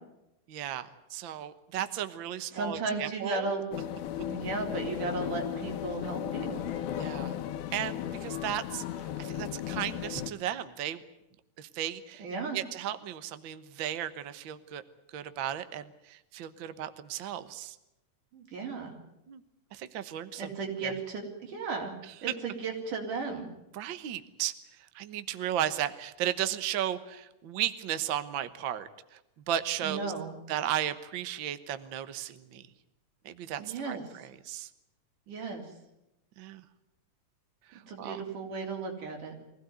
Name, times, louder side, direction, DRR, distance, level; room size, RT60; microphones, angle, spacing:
voice 1, 0.5-3.5 7.0-7.3 7.7-8.8 9.2-11.0 11.6-12.2 12.5-14.8 15.1-17.8 19.3-19.4 19.7-20.5 20.8-20.9 23.7-24.5 24.9-28.9 29.5-30.1 30.5-32.6 33.2-34.7 36.4-36.6 37.7-38.2, right 11 dB, 60° right, 11 dB, 1.3 m, -35 dB
voice 2, 2.5-3.6 4.3-6.6 12.2-12.6 18.3-18.9 20.4-21.9 22.2-23.5 29.8-30.4 33.6-34.0 35.3-35.6 37.7-39.3, right 3 dB, 85° right, 2 dB, 5.1 m, -35 dB
sound 1, 3.7-10.3, left 10 dB, 85° left, 2.5 m, -35 dB
23.5 x 16.5 x 9.5 m, 0.89 s
omnidirectional pair, 3.5 m